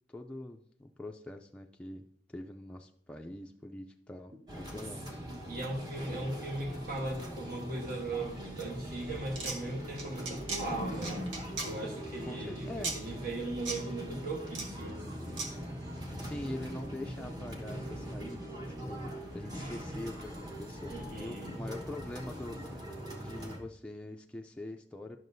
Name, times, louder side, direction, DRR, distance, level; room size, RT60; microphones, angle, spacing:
voice 1, 0.1-2.0 2.3-5.1 12.3-13.0 16.2-22.8 23.1-25.2, left 1 dB, 5° left, 2 dB, 0.3 m, -43 dB
sound 1, 4.5-23.6, equal, 25° right, 1.2 m, -41 dB
voice 2, 5.5-11.2 11.6-15.0 20.9-21.7, right 2 dB, 55° right, -2 dB, 1.3 m, -38 dB
sound 2, 9.3-9.6 10.0-10.6 11.0-11.7 12.8-13.0 13.6-13.8 14.5-14.7 15.4-15.5, right 3 dB, 85° right, 1.3 m, -36 dB
11.0 x 6.2 x 2.6 m, 0.66 s
head